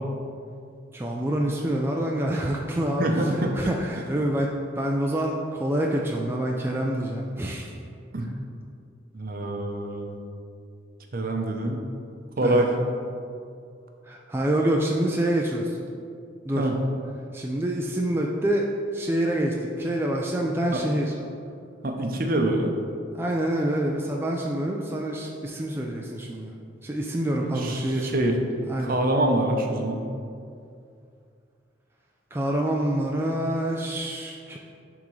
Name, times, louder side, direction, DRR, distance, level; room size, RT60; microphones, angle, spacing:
voice 1, 0.9-7.7 12.4-12.7 14.0-15.8 16.4-16.7 17.3-21.2 23.1-26.5 26.8-28.1 28.7-29.0 32.3-34.6, right 1 dB, 10° right, -1 dB, 0.3 m, -26 dB
voice 2, 3.0-3.5 8.1-8.3 9.1-10.2 11.1-11.8 12.4-12.7 16.5-16.8 20.7-20.8 21.8-22.7 27.4-28.3 28.8-30.0, right 1 dB, 50° right, 2 dB, 0.7 m, -25 dB
10.5 x 3.6 x 3.1 m, 2.4 s
head